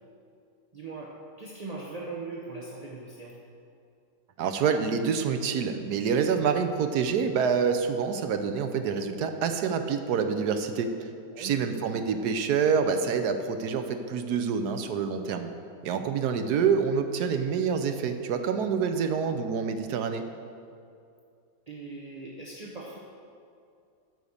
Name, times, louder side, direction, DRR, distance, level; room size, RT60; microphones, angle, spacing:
voice 1, 0.7-3.3 11.3-11.6 16.0-16.2 21.7-23.0, right 3 dB, 35° right, -2 dB, 0.7 m, -40 dB
voice 2, 4.4-10.9 11.4-15.5 15.8-20.2, right 6 dB, 75° right, 7 dB, 1.2 m, -27 dB
9.1 x 6.5 x 7.1 m, 2.5 s
omnidirectional pair, 1.7 m